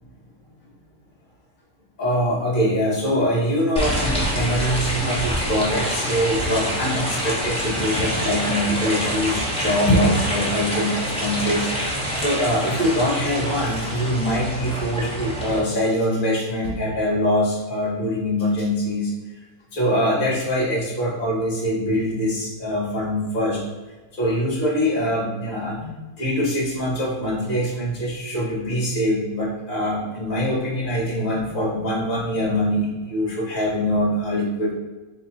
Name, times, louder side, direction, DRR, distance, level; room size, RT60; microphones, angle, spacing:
voice 1, 2.0-19.1 19.7-23.6 24.1-34.7, equal, 35° left, -5 dB, 1.3 m, -23 dB
sound 1, 3.8-15.6, equal, 5° left, 0.7 m, -26 dB
3.7 x 3.0 x 4.0 m, 1.2 s
omnidirectional pair, 1.7 m